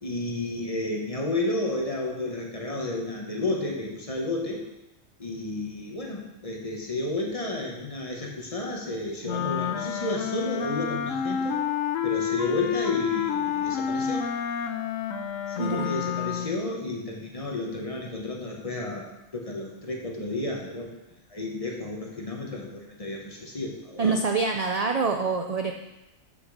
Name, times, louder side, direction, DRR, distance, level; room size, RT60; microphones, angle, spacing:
voice 1, 0.0-4.7 5.2-11.6 12.0-14.3 15.5-20.9 21.3-24.2, left 2 dB, 25° left, -1 dB, 1.4 m, -32 dB
Wind instrument woodwind instrument, 9.2-16.6, left 8 dB, 80° left, 1.0 m, -29 dB
voice 2, 15.6-15.9 24.0-25.7, right 4 dB, 55° right, 3 dB, 0.4 m, -25 dB
6.4 x 6.1 x 6.6 m, 0.95 s
omnidirectional pair, 1.3 m